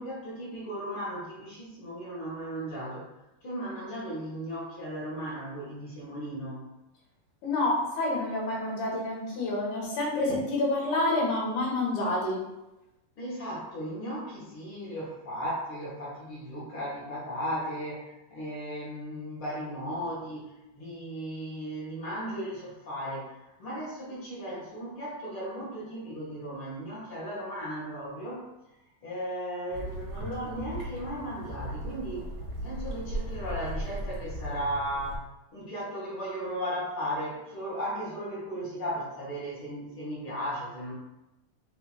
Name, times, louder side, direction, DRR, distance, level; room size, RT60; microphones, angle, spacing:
voice 1, 0.0-3.1 3.4-6.7 13.2-28.5 29.0-32.2 32.6-40.9, equal, 45° left, -7 dB, 2.4 m, -36 dB
voice 2, 7.4-12.4, left 2 dB, 75° left, -3 dB, 3.2 m, -28 dB
sound 1, 29.7-35.2, right 1 dB, 45° right, 1.0 m, -37 dB
6.6 x 3.3 x 4.3 m, 0.95 s
omnidirectional pair, 3.7 m